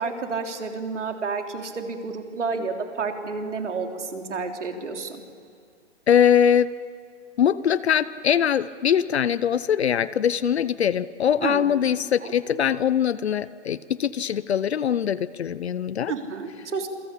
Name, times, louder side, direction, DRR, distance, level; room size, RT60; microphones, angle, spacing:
voice 1, 0.0-5.2 11.4-11.7 12.2-12.3 16.1-16.9, right 4 dB, 75° right, 4 dB, 3.9 m, -30 dB
voice 2, 6.1-6.7 7.4-16.1, left 9 dB, 60° left, 17 dB, 0.8 m, -22 dB
27.5 x 23.5 x 8.5 m, 2.1 s
hypercardioid pair, 155°, 36 cm